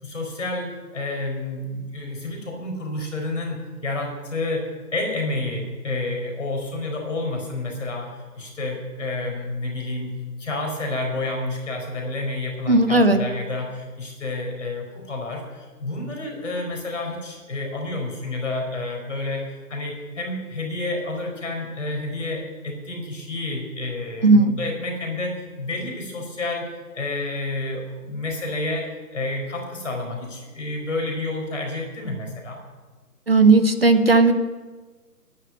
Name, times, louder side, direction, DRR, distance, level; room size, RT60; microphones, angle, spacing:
voice 1, 0.0-4.6 4.9-19.4 19.7-26.7 26.9-32.6, left 2 dB, 50° left, 1 dB, 4.6 m, -29 dB
voice 2, 12.7-13.2 24.2-24.5 33.3-34.3, right 3 dB, 40° right, 8 dB, 0.9 m, -15 dB
10.5 x 9.0 x 9.3 m, 1.3 s
figure-of-eight pair, 165°, 48 cm